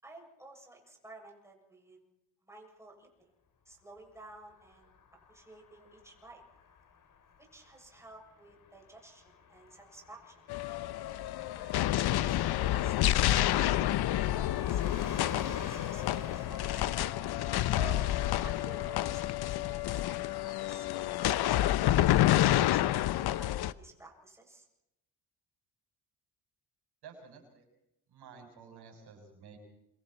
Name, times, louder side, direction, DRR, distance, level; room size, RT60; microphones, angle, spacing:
voice 1, 0.0-2.0 2.4-3.3 3.7-4.9 5.3-6.4 7.4-10.4 11.5-11.8 12.1-16.9 17.7-24.7, right 2 dB, 5° right, 0 dB, 7.4 m, -53 dB
Car passing by / Truck, 4.5-18.9, left 6 dB, 45° left, 4.0 m, -48 dB
sound 1, 10.5-23.7, left 14 dB, 60° left, 0.9 m, -29 dB
voice 2, 27.0-27.7 28.1-29.6, right 6 dB, 60° right, 3 dB, 6.8 m, -52 dB
27.0 x 25.5 x 4.5 m, 0.84 s
cardioid pair, 110°, 43 cm